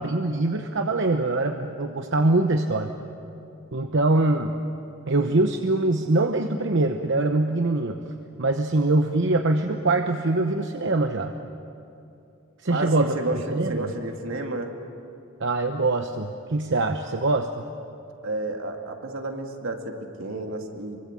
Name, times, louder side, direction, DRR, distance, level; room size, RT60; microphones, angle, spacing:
voice 1, 0.0-2.9 3.7-4.5 5.1-8.0 8.4-11.3 12.6-13.9 15.4-17.6, right 2 dB, 65° right, 6 dB, 1.0 m, -23 dB
voice 2, 12.7-14.7 18.2-21.0, right 2 dB, 80° right, 3 dB, 2.4 m, -31 dB
25.0 x 23.5 x 7.6 m, 2.6 s
head